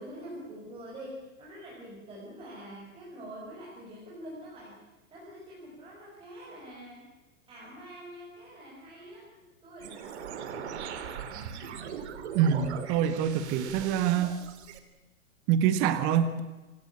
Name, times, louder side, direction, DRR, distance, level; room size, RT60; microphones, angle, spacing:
voice 1, 0.0-4.8 5.1-7.1 7.5-10.2 10.5-11.1, equal, 15° right, -5 dB, 6.1 m, -45 dB
sound 1, 9.8-14.8, right 7 dB, 55° right, 3.1 m, -40 dB
voice 2, 12.3-14.3 15.5-16.4, right 9 dB, 30° right, 11 dB, 1.5 m, -25 dB
26.5 x 18.5 x 8.7 m, 1.1 s
hypercardioid pair, 150°, 41 cm